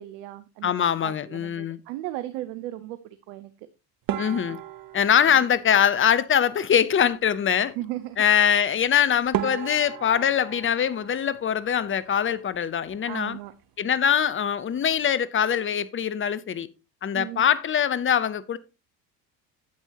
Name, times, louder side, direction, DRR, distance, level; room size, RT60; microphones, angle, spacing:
voice 1, 0.0-0.7 1.0-3.0 3.3-3.5 5.3-5.4 7.5-8.2 13.1-13.5 17.1-17.4, right 15 dB, 70° right, 0.9 m, -36 dB
voice 2, 0.6-1.8 4.2-4.6 4.9-7.7 8.2-13.4 13.8-16.7 17.0-18.6, left 8 dB, 25° left, 0.7 m, -23 dB
sound 1, 4.1-6.5 8.8-8.9 9.3-12.1 12.4-13.1 13.4-13.6 13.9-14.0 14.7-15.0, right 11 dB, 45° right, 1.0 m, -35 dB
9.5 x 8.0 x 2.9 m
hypercardioid pair, 75°, 49 cm